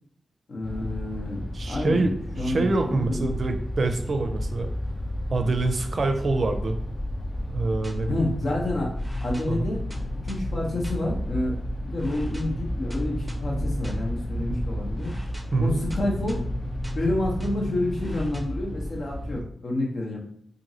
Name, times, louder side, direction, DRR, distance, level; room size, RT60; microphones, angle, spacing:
voice 1, 0.5-1.4 1.7-2.1 2.4-3.6 8.1-8.9 9.2-9.8 10.2-15.1 15.6-16.4 16.9-20.2, left 1 dB, 70° left, -1 dB, 0.8 m, -29 dB
sound 1, 0.6-19.4, left 1 dB, 40° left, 0.4 m, -32 dB
voice 2, 1.5-4.7 5.3-6.8 7.5-8.2 9.5-9.6 14.5-14.6 15.5-15.8, right 3 dB, 65° right, 6 dB, 0.4 m, -26 dB
sound 2, 7.5-18.4, right 2 dB, 10° right, 0.5 m, -42 dB
2.9 x 2.5 x 2.7 m, 0.63 s
cardioid pair, 55°, 0 cm